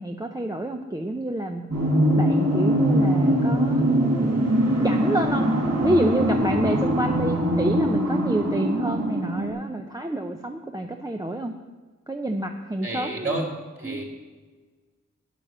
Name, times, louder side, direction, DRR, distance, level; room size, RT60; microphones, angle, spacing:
voice 1, 0.0-1.6 2.2-4.3 4.8-5.5 5.8-11.5 12.1-13.5 13.8-14.0, right 1 dB, 10° right, 3 dB, 0.6 m, -28 dB
sound 1, 1.7-9.5, equal, 60° right, 3.8 m, -22 dB
voice 2, 12.8-13.5 13.8-14.0, right 2 dB, 45° right, -1 dB, 2.8 m, -30 dB
9.9 x 9.1 x 6.7 m, 1.4 s
wide cardioid pair, 105°, 31 cm